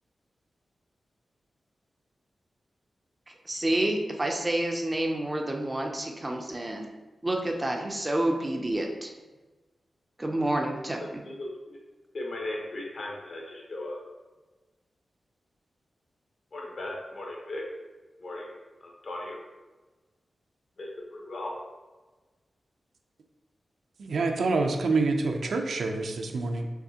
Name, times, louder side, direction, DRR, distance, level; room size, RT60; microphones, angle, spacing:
voice 1, 3.3-6.9 7.2-9.1 10.2-11.2, right 1 dB, 15° right, 2 dB, 0.4 m, -29 dB
voice 2, 11.2-11.8 12.1-14.0 16.5-17.6 18.2-18.5 18.8-19.4 20.8-21.5, left 1 dB, 50° left, -1 dB, 0.9 m, -37 dB
voice 3, 24.0-26.7, right 3 dB, 70° right, 4 dB, 0.5 m, -27 dB
5.8 x 3.2 x 2.8 m, 1.2 s
wide cardioid pair, 175°, 0 cm